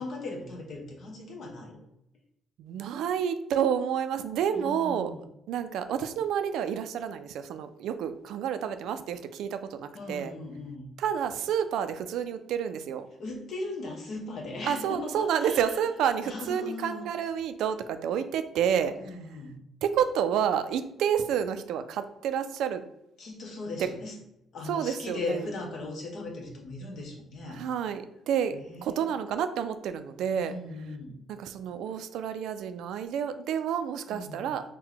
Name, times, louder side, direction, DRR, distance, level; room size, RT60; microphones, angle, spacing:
voice 1, 0.0-1.8 4.5-5.3 9.9-10.9 13.2-15.7 16.2-17.1 19.0-19.6 23.2-24.2 24.5-27.6 28.5-29.1 30.3-31.2 34.1-34.5, left 2 dB, 55° left, 1 dB, 0.8 m, -38 dB
voice 2, 2.6-5.1 5.5-10.3 11.0-13.1 14.6-18.9 19.8-22.8 23.8-23.9 24.7-25.4 27.5-30.5 31.4-34.6, right 8 dB, 85° right, 10 dB, 0.3 m, -29 dB
4.4 x 2.2 x 3.8 m, 0.82 s
cardioid pair, 125°, 0 cm